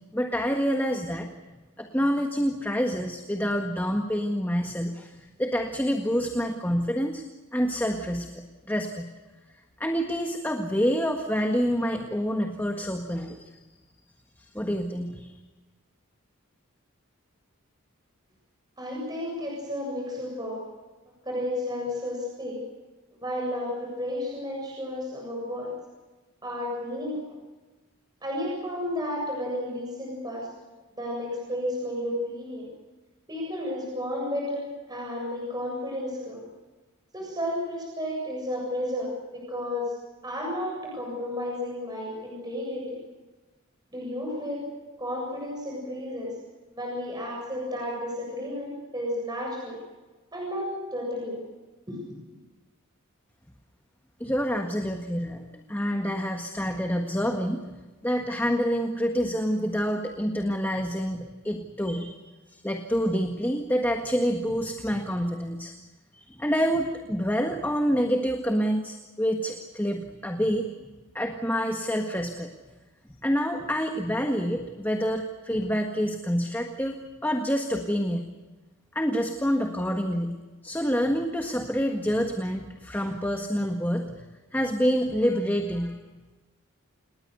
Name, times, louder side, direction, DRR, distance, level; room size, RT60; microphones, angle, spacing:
voice 1, 0.1-1.3 1.8-7.2 7.5-9.1 9.8-13.5 14.4-15.3 54.2-57.6 58.0-65.7 66.1-70.7 71.1-72.5 73.2-78.3 78.9-80.4 80.6-84.2 84.5-86.0, equal, 10° left, 3 dB, 1.6 m, -27 dB
voice 2, 18.8-20.6 21.2-22.6 23.1-25.7 26.4-27.2 28.2-30.5 31.0-32.7 33.3-36.4 37.1-39.9 40.2-43.0 43.9-44.7 45.0-46.3 46.7-49.8 50.3-51.4 51.9-52.3, left 1 dB, 20° right, -2 dB, 7.5 m, -32 dB
29.0 x 20.5 x 6.9 m, 1.2 s
head